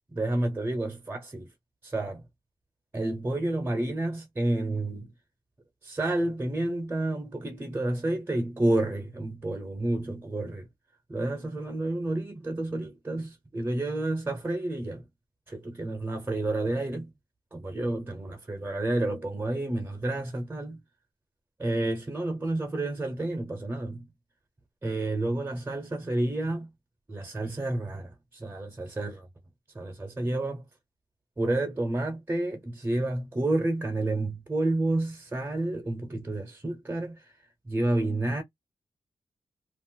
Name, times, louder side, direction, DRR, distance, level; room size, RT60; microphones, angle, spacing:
voice 1, 0.1-1.5 1.8-2.2 2.9-5.1 5.8-10.7 11.1-15.1 15.5-17.1 17.5-20.8 21.6-24.1 24.8-26.7 27.1-29.3 29.7-30.6 31.4-37.3 37.7-38.4, right 2 dB, 20° right, 0.9 m, -30 dB
2.5 x 2.1 x 3.9 m
cardioid pair, 65°, 10 cm